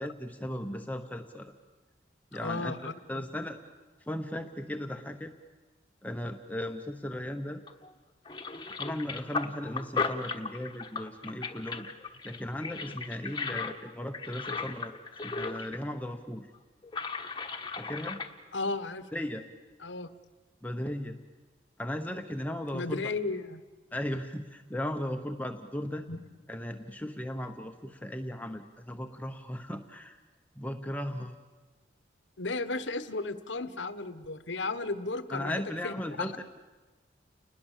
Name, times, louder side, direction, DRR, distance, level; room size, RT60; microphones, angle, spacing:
voice 1, 0.0-1.5 2.3-3.6 4.0-5.3 6.0-7.6 8.8-11.9 12.2-14.9 15.2-16.5 17.8-18.2 19.1-19.4 20.6-21.2 21.8-23.0 23.9-26.1 26.5-30.2 30.5-31.3 35.3-36.4, left 1 dB, 10° left, 5 dB, 1.0 m, -36 dB
voice 2, 2.3-3.2 18.5-19.1 19.8-20.1 22.7-23.6 26.1-26.2 32.4-36.3, left 3 dB, 85° left, 12 dB, 1.3 m, -34 dB
sound 1, 7.7-7.9 8.3-15.8 16.1-16.2 16.8-18.3, left 4 dB, 25° left, 1.2 m, -36 dB
30.0 x 20.5 x 7.4 m, 1.3 s
head